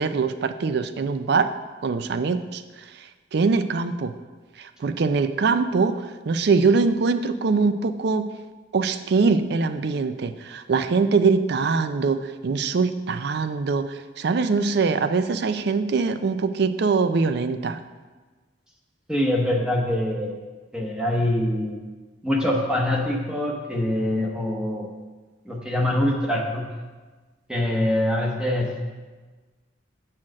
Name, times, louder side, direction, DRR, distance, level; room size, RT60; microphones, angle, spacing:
voice 1, 0.0-1.5 1.8-2.6 3.3-4.1 4.8-5.9 6.3-8.2 8.7-17.8, right 4 dB, 60° right, 11 dB, 0.4 m, -22 dB
voice 2, 19.1-20.3 20.7-21.8 22.2-24.9 25.5-26.7 27.5-28.8, left 1 dB, 5° right, -1 dB, 0.8 m, -24 dB
7.3 x 4.3 x 6.3 m, 1.3 s
head